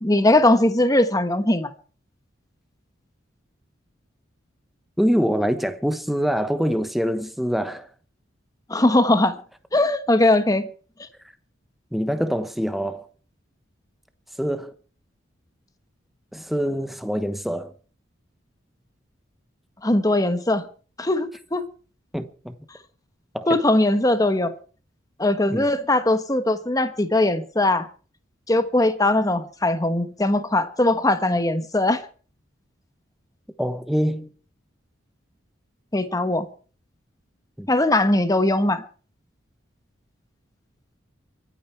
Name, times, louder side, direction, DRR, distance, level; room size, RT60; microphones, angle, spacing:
voice 1, 0.0-1.7 8.7-9.4 9.7-10.7 19.8-20.6 21.0-21.6 23.5-24.5 25.2-27.9 28.5-32.0 35.9-36.5 37.7-38.8, left 1 dB, 20° left, 1.2 m, -20 dB
voice 2, 5.0-7.9 11.9-13.1 14.4-14.7 16.3-17.7 22.1-22.6 23.3-23.6 25.5-25.6 33.6-34.3 37.6-37.7, equal, ahead, 1.0 m, -25 dB
24.0 x 9.3 x 4.5 m
head